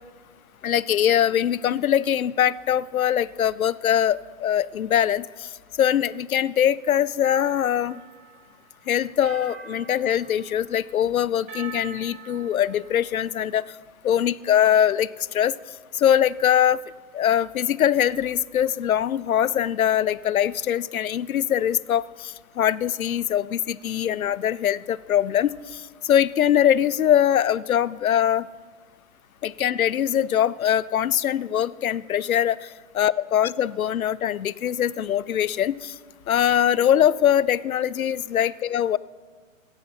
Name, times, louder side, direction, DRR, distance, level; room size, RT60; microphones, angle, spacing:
voice 1, 0.6-5.5 5.8-8.0 8.9-13.6 14.0-15.5 15.9-16.8 17.1-28.5 29.4-32.7 33.0-35.9 36.3-39.0, left 10 dB, 85° left, 20 dB, 0.5 m, -22 dB
sound 1, 7.2-8.5 9.2-10.8 11.5-13.0, right 6 dB, 35° right, 2.7 m, -43 dB
15.0 x 8.8 x 5.7 m, 1.5 s
figure-of-eight pair, 125°, 41 cm